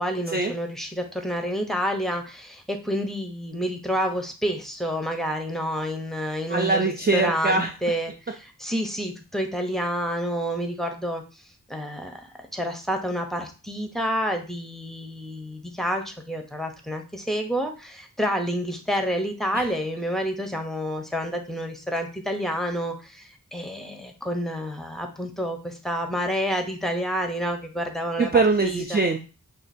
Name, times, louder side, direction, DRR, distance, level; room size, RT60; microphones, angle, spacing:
voice 1, 0.0-28.3 28.6-29.0, equal, ahead, 3 dB, 0.8 m, -29 dB
voice 2, 6.5-7.7 19.5-19.7 28.2-29.2, right 3 dB, 30° right, 3 dB, 0.4 m, -22 dB
5.7 x 2.5 x 2.6 m, 0.33 s
wide cardioid pair, 45°, 35 cm